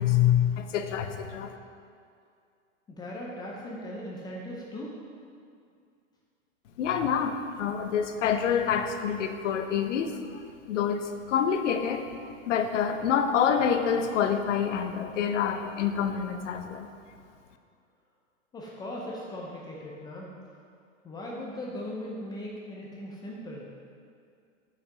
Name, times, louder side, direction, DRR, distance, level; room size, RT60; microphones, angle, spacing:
voice 1, 0.0-1.5 6.8-10.2 10.7-12.1 12.5-16.9, left 8 dB, 65° left, 6 dB, 0.9 m, -27 dB
voice 2, 2.9-5.0 18.5-20.3 21.0-23.7, left 1 dB, 10° left, -3 dB, 0.5 m, -38 dB
6.0 x 5.8 x 6.4 m, 2.3 s
hypercardioid pair, 140°, 40 cm